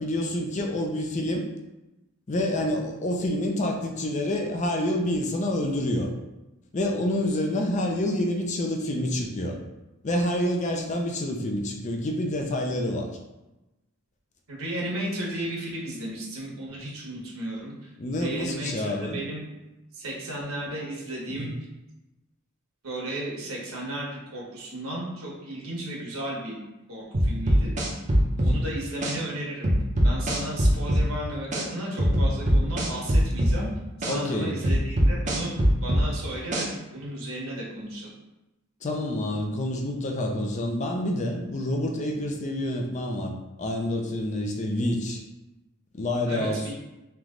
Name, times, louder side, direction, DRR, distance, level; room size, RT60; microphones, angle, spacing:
voice 1, 0.0-1.5 2.3-6.1 6.7-9.6 10.0-13.1 18.0-19.2 21.3-21.5 28.4-28.6 34.1-34.6 38.8-45.2 45.9-46.7, left 1 dB, 35° left, 2 dB, 0.4 m, -28 dB
voice 2, 14.5-17.9 18.2-19.4 19.9-21.5 22.8-26.6 26.9-27.7 28.4-29.7 30.0-33.7 34.0-38.1 46.3-46.7, right 1 dB, 70° right, -3 dB, 1.2 m, -34 dB
sound 1, 27.1-28.6 29.0-29.1 29.6-31.1 31.5-31.6 32.0-33.6 34.0-34.1 34.6-36.1 36.5-36.7, equal, 35° right, 0.6 m, -21 dB
3.3 x 3.0 x 3.7 m, 1.0 s
head